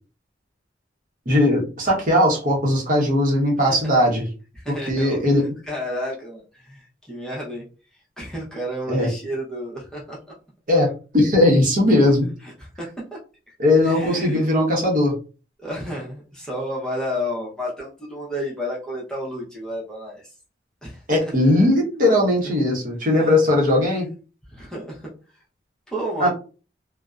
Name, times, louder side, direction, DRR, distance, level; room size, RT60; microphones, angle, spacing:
voice 1, 1.3-4.2 4.7-5.4 8.9-9.1 10.7-10.9 11.1-12.3 13.6-15.1 21.1-24.1 26.2-26.3, left 1 dB, 45° right, -2 dB, 0.8 m, -18 dB
voice 2, 3.7-4.0 4.5-5.2 5.7-7.6 7.9-10.2 12.4-12.9 13.5-13.6 13.8-14.5 15.6-20.3 20.8-21.3 23.1-23.3 24.4-25.4 25.9-26.3, equal, 5° left, -5 dB, 0.6 m, -31 dB
2.5 x 2.0 x 2.3 m, 0.35 s
head